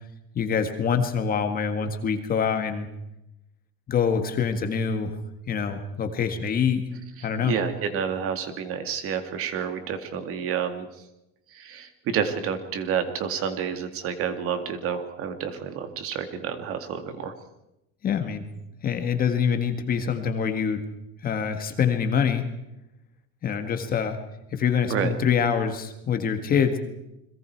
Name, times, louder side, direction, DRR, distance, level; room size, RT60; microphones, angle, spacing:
voice 1, 0.4-2.9 3.9-5.1 5.5-6.8 7.2-7.6 18.0-18.5 18.8-20.8 21.2-22.5 23.4-24.2 24.5-26.8, left 7 dB, 30° left, 7 dB, 1.8 m, -25 dB
voice 2, 7.5-10.9 11.5-17.3 24.9-25.1, right 7 dB, 45° right, 8 dB, 2.2 m, -29 dB
29.5 x 22.0 x 4.6 m, 0.88 s
cardioid pair, 160°, 31 cm